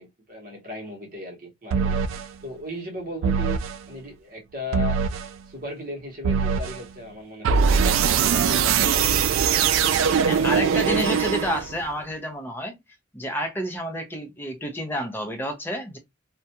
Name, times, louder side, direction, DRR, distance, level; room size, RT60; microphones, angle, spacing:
voice 1, 0.0-2.0 2.4-3.6 3.9-5.2 5.5-9.2 9.5-10.8, left 1 dB, 45° right, 1.0 m, -37 dB
sound 1, 1.7-2.3 3.2-3.8 4.7-5.3 6.2-6.8 7.4-11.8, right 6 dB, 80° right, 0.3 m, -21 dB
voice 2, 10.3-12.8 13.1-16.0, equal, 10° left, 0.6 m, -29 dB
2.4 x 2.1 x 2.8 m
head